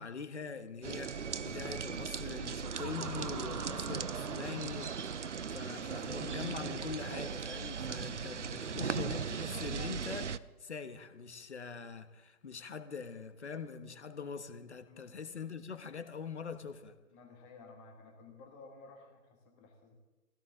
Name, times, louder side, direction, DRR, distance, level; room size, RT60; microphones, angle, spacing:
voice 1, 0.0-17.0, left 5 dB, 50° left, 1.3 m, -43 dB
sound 1, 0.8-10.4, right 6 dB, 55° right, 0.6 m, -38 dB
Laughter, 2.6-6.3, right 5 dB, 80° right, 0.8 m, -48 dB
voice 2, 17.1-19.9, left 3 dB, 10° left, 1.3 m, -54 dB
20.0 x 16.5 x 3.8 m
figure-of-eight pair, 145°, 45 cm